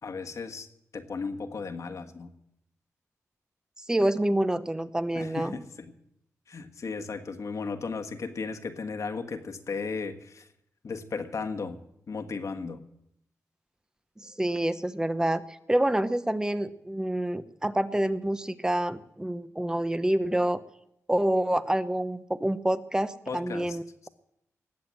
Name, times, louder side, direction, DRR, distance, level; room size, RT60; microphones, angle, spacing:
voice 1, 0.0-0.7 0.9-2.3 5.1-5.6 6.5-10.5 10.8-11.8 12.1-12.8 23.3-23.8 24.0-24.1, left 4 dB, 65° left, 6 dB, 1.5 m, -35 dB
voice 2, 3.9-5.6 14.2-20.6 21.1-24.1, right 1 dB, 10° right, 12 dB, 0.9 m, -27 dB
19.5 x 7.9 x 7.5 m, 0.78 s
cardioid pair, 75°, 6 cm